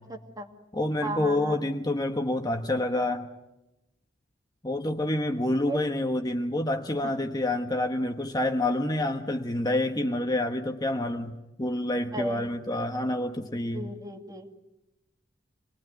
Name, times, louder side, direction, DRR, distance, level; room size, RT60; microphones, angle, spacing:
voice 1, 0.1-0.5 1.0-1.6 5.6-5.8 7.0-7.1 12.1-12.5 13.7-14.5, right 1 dB, 20° right, 5 dB, 2.1 m, -34 dB
voice 2, 0.7-3.3 4.6-11.3 11.6-13.9, left 1 dB, 20° left, 4 dB, 1.2 m, -28 dB
27.0 x 20.0 x 9.4 m, 0.96 s
head